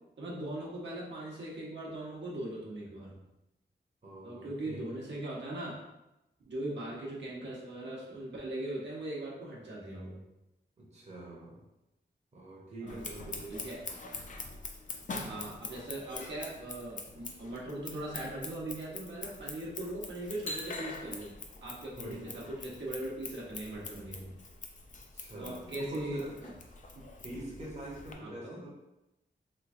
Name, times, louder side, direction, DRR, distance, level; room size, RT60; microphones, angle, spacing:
voice 1, 0.2-3.2 4.2-5.8 6.5-10.2 12.8-13.0 13.5-13.8 15.2-21.3 21.6-24.4 25.4-26.5 26.9-27.0 28.2-28.6, right 1 dB, 80° right, -5 dB, 1.0 m, -40 dB
voice 2, 4.0-5.1 10.8-11.6 12.3-13.8 22.0-22.5 25.1-26.4 27.2-28.7, right 1 dB, 35° right, -4 dB, 0.7 m, -44 dB
Scissors, 12.9-28.1, left 3 dB, 45° left, 0.4 m, -44 dB
3.3 x 3.1 x 2.5 m, 0.93 s
wide cardioid pair, 125°, 18 cm